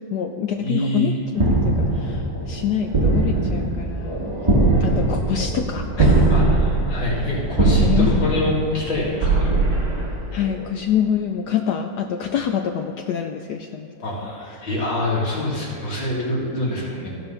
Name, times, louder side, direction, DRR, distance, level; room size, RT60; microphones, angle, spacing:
voice 1, 0.0-4.3 4.8-6.4 7.8-8.5 10.3-13.9 14.2-14.3 14.6-14.7, left 8 dB, 85° left, 4 dB, 0.8 m, -26 dB
voice 2, 0.6-1.1 6.3-9.5 14.0-17.1, left 2 dB, 65° left, -6 dB, 3.1 m, -25 dB
sound 1, 1.3-10.7, right 2 dB, 15° right, 1.4 m, -21 dB
15.5 x 5.3 x 5.5 m, 2.7 s
omnidirectional pair, 2.3 m